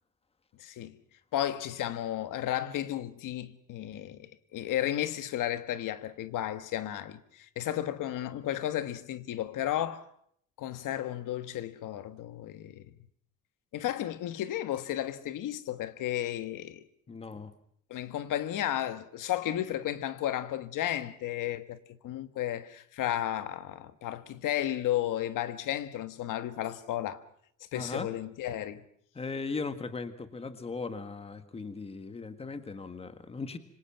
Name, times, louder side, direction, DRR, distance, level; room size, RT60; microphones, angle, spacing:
voice 1, 0.6-1.0 1.3-10.1 10.6-12.8 13.7-16.8 17.9-21.8 22.0-27.2 27.7-28.8, left 12 dB, 80° left, 1.5 m, -33 dB
voice 2, 17.1-17.5 27.7-28.1 29.2-33.6, left 4 dB, 20° left, 1.7 m, -38 dB
26.5 x 25.5 x 5.9 m
cardioid pair, 170°, 31 cm